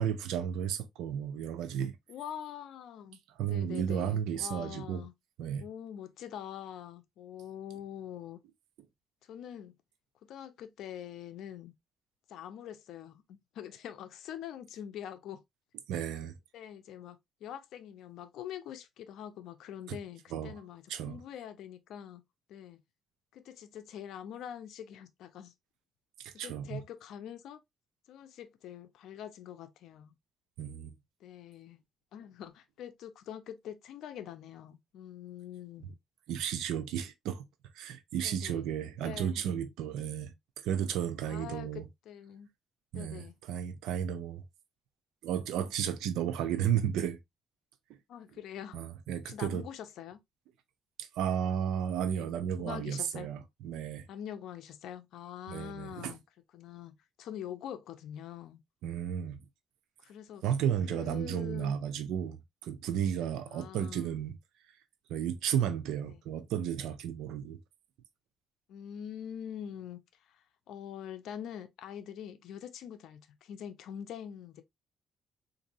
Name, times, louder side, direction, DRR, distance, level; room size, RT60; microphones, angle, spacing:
voice 1, 0.0-2.0 3.4-5.0 5.4-5.6 15.9-16.4 20.3-20.6 20.9-21.2 26.2-26.8 30.6-31.0 36.3-37.5 37.7-40.3 40.6-41.9 42.9-43.2 43.5-44.4 45.2-47.2 48.7-49.6 51.0-54.1 55.5-56.1 58.8-59.4 60.4-62.4 62.6-64.3 65.1-67.6, right 9 dB, 85° right, 0.6 m, -33 dB
voice 2, 2.1-3.2 3.5-5.1 5.6-8.4 9.2-9.8 10.2-11.7 12.3-15.4 16.5-22.2 22.5-22.8 23.3-25.5 26.3-27.6 28.1-30.2 31.2-31.8 32.1-36.0 38.2-38.6 39.0-39.4 41.3-42.5 42.9-43.3 48.1-48.8 49.2-50.2 52.1-53.3 54.1-56.2 56.5-58.6 60.0-60.4 60.9-61.7 63.5-64.2 66.1-66.2 68.7-74.6, left 9 dB, 80° left, 0.5 m, -44 dB
3.9 x 2.6 x 2.6 m
cardioid pair, 90°, 0 cm